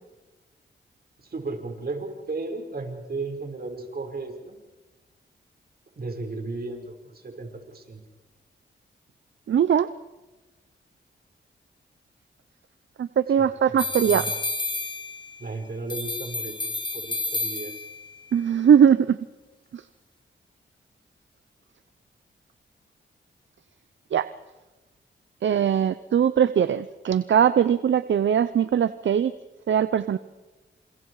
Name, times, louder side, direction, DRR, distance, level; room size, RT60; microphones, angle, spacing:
voice 1, 1.2-4.6 6.0-8.0 13.3-14.4 15.4-17.9, right 3 dB, 50° right, 4 dB, 5.5 m, -35 dB
voice 2, 9.5-9.9 13.0-14.3 18.3-19.2 19.7-19.8 24.1-24.3 25.4-29.3 29.7-30.2, right 8 dB, 75° right, 14 dB, 0.7 m, -20 dB
sound 1, 13.8-15.4 15.9-18.1, left 2 dB, 25° left, 2.7 m, -30 dB
29.0 x 28.0 x 4.9 m, 1.1 s
cardioid pair, 65°, 20 cm